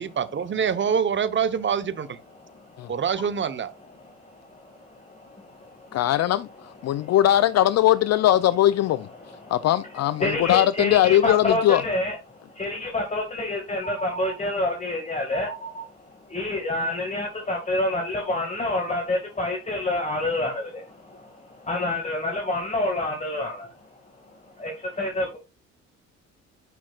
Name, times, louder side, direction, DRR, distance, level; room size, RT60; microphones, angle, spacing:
voice 1, 0.0-2.2 2.9-3.7, right 7 dB, 40° right, 0.9 m, -25 dB
voice 2, 2.4-3.0 4.0-6.1 6.8-7.2 9.2-25.4, left 1 dB, 25° left, 2.0 m, -29 dB
voice 3, 5.9-6.5 6.8-9.1 9.5-11.8, left 13 dB, 60° left, 0.4 m, -20 dB
9.2 x 5.8 x 2.4 m
cardioid pair, 90°, 30 cm